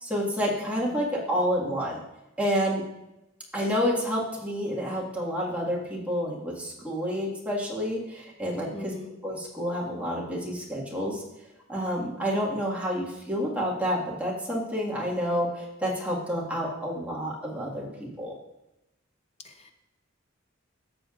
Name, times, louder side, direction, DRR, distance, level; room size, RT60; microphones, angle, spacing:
voice 1, 0.0-2.0 2.4-2.8 3.5-8.9 9.2-11.2 11.7-18.3, equal, 5° right, -5 dB, 1.9 m, -29 dB
voice 2, 0.8-1.2 8.7-9.1 19.4-19.7, left 1 dB, 30° left, 6 dB, 0.8 m, -43 dB
13.5 x 6.8 x 2.5 m, 0.92 s
head